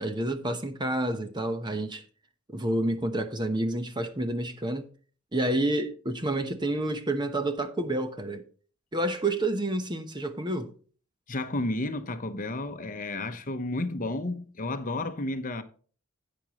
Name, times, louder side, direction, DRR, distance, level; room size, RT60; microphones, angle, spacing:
voice 1, 0.0-2.0 2.5-4.9 5.3-8.4 8.9-10.7, right 1 dB, 20° right, 1.0 m, -29 dB
voice 2, 11.3-15.6, left 2 dB, 40° left, 0.9 m, -32 dB
11.0 x 8.7 x 3.0 m
head